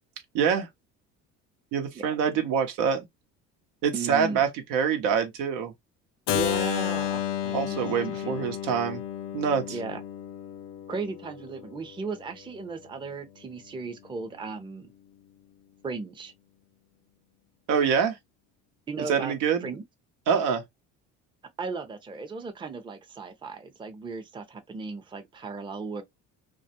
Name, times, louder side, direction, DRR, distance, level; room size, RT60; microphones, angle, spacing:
voice 1, 0.3-0.7 1.7-3.1 3.8-5.7 7.5-9.0 9.3-9.8 17.7-18.2 19.0-19.7 20.3-20.6, right 7 dB, 90° right, 0.8 m, -25 dB
voice 2, 3.9-4.4 6.3-7.9 8.2-8.3 9.7-10.0 10.9-14.9 15.8-16.3 18.9-19.3 19.6-19.8 21.6-26.0, right 4 dB, 15° right, 0.5 m, -36 dB
Keyboard (musical), 6.3-12.1, left 10 dB, 70° left, 0.5 m, -32 dB
2.3 x 2.1 x 2.7 m
cardioid pair, 95°, 33 cm